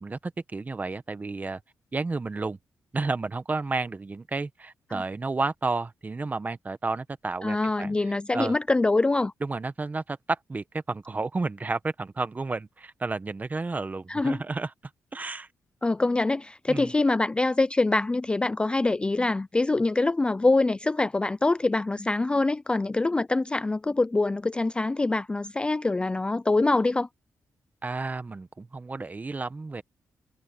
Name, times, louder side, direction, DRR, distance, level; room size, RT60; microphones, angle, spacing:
voice 1, 0.0-1.6 1.9-2.6 2.9-8.5 9.4-14.7 15.1-15.5 16.7-16.9 27.8-29.8, right 3 dB, 25° right, 1.1 m, -31 dB
voice 2, 7.4-9.3 14.1-14.4 15.8-27.1, left 2 dB, 15° left, 0.3 m, -24 dB
cardioid pair, 105°, 6 cm